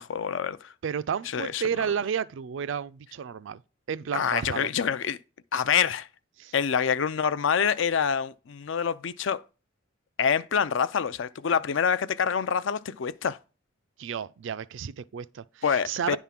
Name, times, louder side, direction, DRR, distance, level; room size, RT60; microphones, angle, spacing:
voice 1, 0.0-0.7 1.3-1.6 4.1-5.2 5.5-6.1 6.5-9.4 10.2-13.4 15.6-16.2, left 7 dB, 70° left, 0.4 m, -26 dB
voice 2, 0.8-3.6 3.9-4.7 6.4-6.5 14.0-16.2, right 7 dB, 70° right, 0.4 m, -32 dB
10.0 x 3.6 x 5.8 m
head